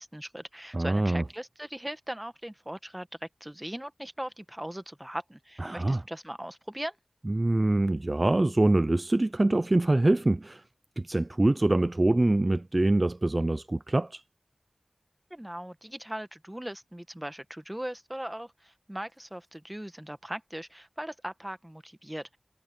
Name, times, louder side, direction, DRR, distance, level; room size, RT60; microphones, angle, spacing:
voice 1, 0.0-7.0 15.3-22.4, right 1 dB, 15° right, 1.2 m, -39 dB
voice 2, 0.7-1.2 5.6-6.0 7.3-10.6 11.0-14.2, right 2 dB, 45° right, 0.4 m, -24 dB
wide cardioid pair, 55°, 0 cm